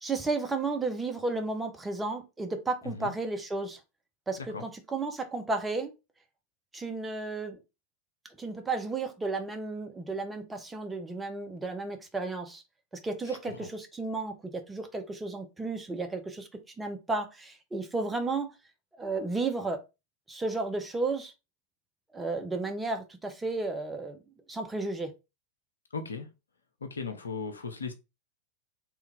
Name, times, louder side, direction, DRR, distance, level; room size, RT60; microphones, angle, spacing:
voice 1, 0.0-3.8 4.3-5.9 6.7-7.6 8.4-12.6 13.0-16.5 16.8-18.5 19.0-19.8 20.3-21.3 22.1-24.2 24.5-25.1, right 3 dB, 10° right, 0.7 m, -33 dB
voice 2, 13.3-13.7 25.9-26.3 26.8-27.9, left 5 dB, 75° left, 0.6 m, -37 dB
3.2 x 2.3 x 3.4 m
figure-of-eight pair, 90°, 0 cm